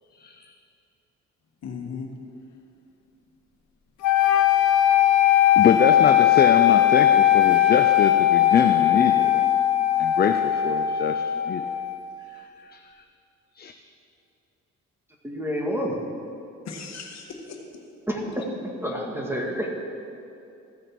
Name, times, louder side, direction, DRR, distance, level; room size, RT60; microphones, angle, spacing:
voice 1, 1.6-2.1 16.6-17.6, left 5 dB, 60° left, 1 dB, 1.5 m, -36 dB
sound 1, 4.0-12.1, left 11 dB, 75° left, 0.8 m, -19 dB
voice 2, 5.6-9.5 10.0-11.6 12.3-12.4 12.7-12.8 13.6-13.7, left 7 dB, 35° left, 6 dB, 0.5 m, -24 dB
voice 3, 15.2-16.0 18.1-18.5 18.8-19.7, equal, 10° right, -1 dB, 1.8 m, -28 dB
14.5 x 6.5 x 4.6 m, 2.7 s
cardioid pair, 90°, 30 cm